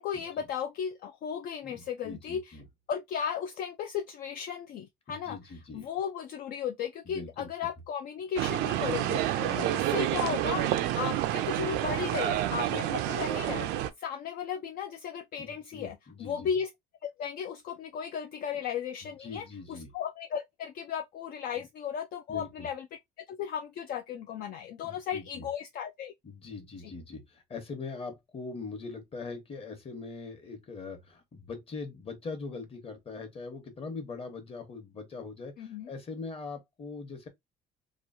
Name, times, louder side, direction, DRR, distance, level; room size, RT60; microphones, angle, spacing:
voice 1, 0.0-2.6 2.9-5.4 5.7-9.3 9.6-10.7 11.0-13.7 14.0-16.7 17.0-22.9 23.2-26.1 35.6-35.9, left 8 dB, 60° left, 0.4 m, -35 dB
voice 2, 1.6-2.6 5.1-5.9 7.1-7.5 9.4-9.8 12.5-13.0 15.4-16.5 19.0-19.9 21.6-21.7 22.3-22.7 24.8-25.5 26.2-37.3, left 4 dB, 35° left, 1.1 m, -42 dB
sound 1, 8.4-13.9, right 13 dB, 90° right, 0.4 m, -29 dB
3.0 x 2.3 x 2.6 m
cardioid pair, 110°, 17 cm